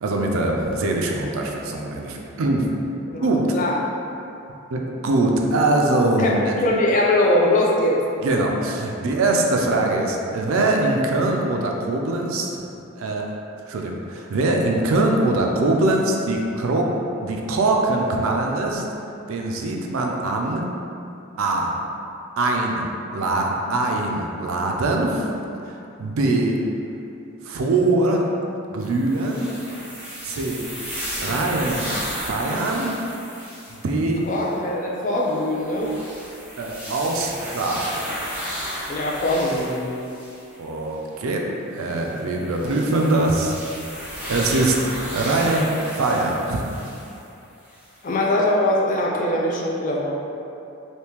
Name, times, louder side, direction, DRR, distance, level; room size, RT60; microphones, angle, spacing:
voice 1, 0.0-2.7 3.2-3.4 4.7-6.5 8.2-12.6 13.0-13.3 13.7-18.8 19.3-20.6 21.4-21.7 22.4-25.3 26.0-26.6 27.4-28.3 28.7-29.5 30.2-30.6 31.2-31.9 32.2-32.9 33.8-34.2 36.6-38.1 40.6-41.5 41.7-43.5 44.3-44.8 45.1-46.7, right 2 dB, 75° right, 0 dB, 0.4 m, -22 dB
voice 2, 6.2-8.0 34.3-35.9 38.9-39.8 48.0-50.1, left 1 dB, 35° left, -2 dB, 0.4 m, -21 dB
sound 1, 28.8-33.8 34.3-34.5 35.2-40.6 41.7-47.2 47.7-47.8, equal, 5° right, 0.6 m, -34 dB
3.5 x 2.7 x 2.9 m, 2.7 s
head